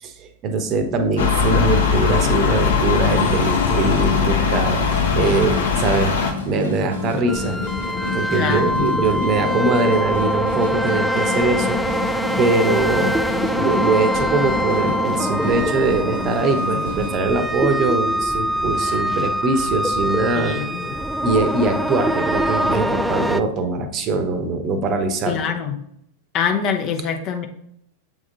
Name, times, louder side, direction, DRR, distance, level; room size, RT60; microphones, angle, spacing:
voice 1, 0.0-6.1 6.4-7.6 8.1-11.8 12.4-13.2 13.5-20.6 21.2-25.4, right 3 dB, 35° right, 7 dB, 0.9 m, -22 dB
sound 1, 1.2-6.3, left 6 dB, 65° left, 0.9 m, -20 dB
sound 2, 2.9-17.2, left 4 dB, 85° left, 1.5 m, -30 dB
sound 3, 7.3-23.4, equal, ahead, 0.3 m, -23 dB
voice 2, 8.3-8.9 20.3-20.9 25.3-25.8 26.3-27.5, left 6 dB, 35° left, 4 dB, 0.8 m, -24 dB
7.6 x 3.6 x 4.0 m, 0.74 s
figure-of-eight pair, 90°, 0 cm